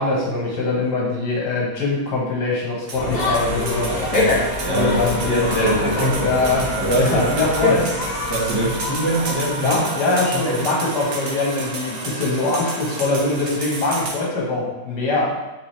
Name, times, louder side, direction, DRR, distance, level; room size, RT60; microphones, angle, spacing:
voice 1, 0.0-4.0 4.7-5.5 6.2-6.7 7.0-7.8 9.6-15.3, left 2 dB, 70° left, -3 dB, 1.8 m, -22 dB
sound 1, 2.9-9.8, left 2 dB, 50° left, 0.5 m, -26 dB
sound 2, 2.9-14.2, right 3 dB, 55° right, 0.8 m, -33 dB
sound 3, 3.2-14.1, right 2 dB, 85° right, 1.4 m, -33 dB
voice 2, 3.8-7.8 8.3-10.5, right 1 dB, 20° right, -7 dB, 0.6 m, -24 dB
4.8 x 3.4 x 3.2 m, 1.1 s
omnidirectional pair, 1.9 m